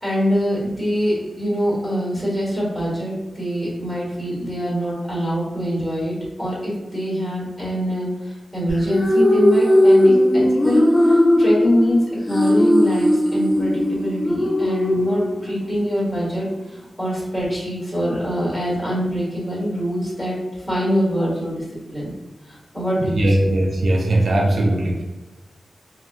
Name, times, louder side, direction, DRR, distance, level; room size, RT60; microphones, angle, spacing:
voice 1, 0.0-21.6 21.9-22.1 22.4-23.5 24.5-24.6, equal, 5° left, -7 dB, 1.3 m, -24 dB
sound 1, 8.7-15.7, left 1 dB, 20° left, 0.5 m, -17 dB
voice 2, 23.1-25.0, right 1 dB, 65° right, -1 dB, 0.4 m, -19 dB
3.0 x 2.2 x 2.4 m, 1.1 s
wide cardioid pair, 115°, 0 cm